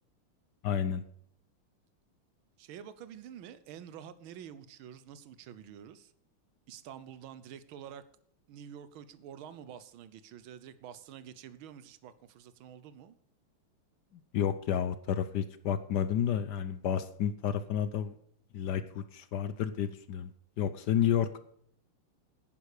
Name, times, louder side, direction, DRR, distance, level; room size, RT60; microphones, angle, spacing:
voice 1, 0.6-1.0 14.3-18.1 18.5-20.3 20.6-21.4, left 9 dB, 65° left, 1.1 m, -30 dB
voice 2, 2.6-6.1 6.7-8.0 8.5-13.2, right 9 dB, 75° right, 1.6 m, -48 dB
11.0 x 9.7 x 4.9 m
omnidirectional pair, 2.4 m